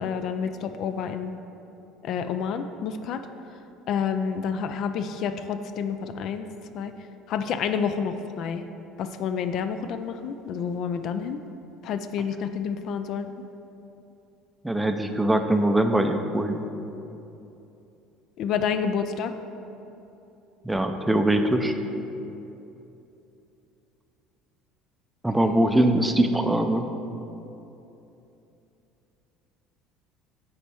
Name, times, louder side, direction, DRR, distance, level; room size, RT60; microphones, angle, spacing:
voice 1, 0.0-1.4 2.0-3.3 3.9-6.5 6.7-6.9 7.3-8.6 9.0-11.4 11.8-13.3 18.4-19.3 25.4-25.6, left 6 dB, 55° left, 9 dB, 0.3 m, -29 dB
voice 2, 14.6-16.7 20.6-21.7 25.2-26.9, right 1 dB, 5° right, 6 dB, 0.4 m, -22 dB
8.4 x 3.2 x 6.1 m, 2.9 s
supercardioid pair, 115°, 0 cm